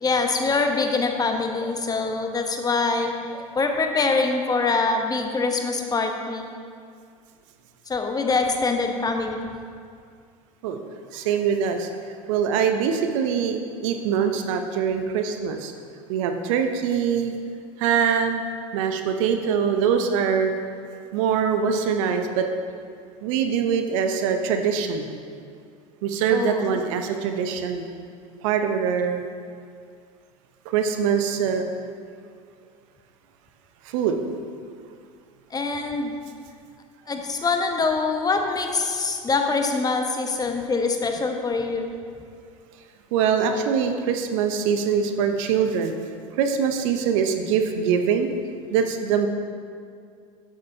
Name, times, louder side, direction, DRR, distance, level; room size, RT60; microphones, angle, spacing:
voice 1, 0.0-6.5 7.9-9.5 26.3-26.7 35.5-36.2 37.1-41.9, left 4 dB, 20° left, 4 dB, 0.8 m, -24 dB
voice 2, 11.1-15.7 16.1-17.3 17.8-18.4 18.7-20.5 21.1-22.5 23.2-25.1 26.0-27.9 28.4-29.2 30.7-31.6 33.8-34.2 43.1-46.0 46.4-48.3 48.7-49.3, right 7 dB, 65° right, 6 dB, 0.7 m, -23 dB
8.5 x 7.4 x 2.7 m, 2.2 s
hypercardioid pair, 80°, 18 cm